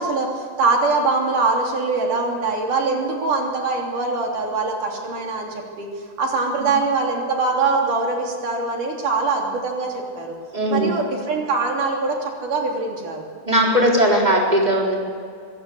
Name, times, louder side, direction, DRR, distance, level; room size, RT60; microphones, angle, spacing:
voice 1, 0.0-5.9 6.2-10.4 10.7-13.3, right 3 dB, 80° right, 0 dB, 4.7 m, -23 dB
voice 2, 10.5-11.0 13.4-14.9, right 1 dB, 15° right, -1 dB, 4.0 m, -18 dB
25.0 x 16.0 x 8.6 m, 2.1 s
omnidirectional pair, 3.6 m